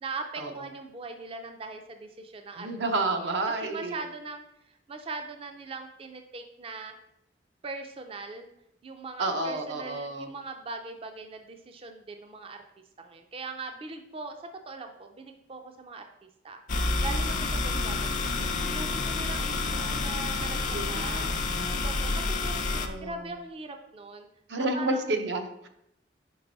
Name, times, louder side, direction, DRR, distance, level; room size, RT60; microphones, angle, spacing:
voice 1, 0.0-2.7 3.2-6.9 7.6-8.5 8.8-12.6 13.0-14.4 14.7-18.1 18.4-20.6 20.9-24.3 24.7-25.1, right 3 dB, 30° right, 5 dB, 0.4 m, -41 dB
voice 2, 2.6-4.0 9.2-10.3 20.7-21.8 22.6-23.3 24.5-25.7, right 2 dB, 75° right, 6 dB, 0.7 m, -31 dB
sound 1, 16.7-22.9, left 3 dB, 45° left, 0.5 m, -29 dB
5.2 x 4.6 x 3.9 m, 0.79 s
head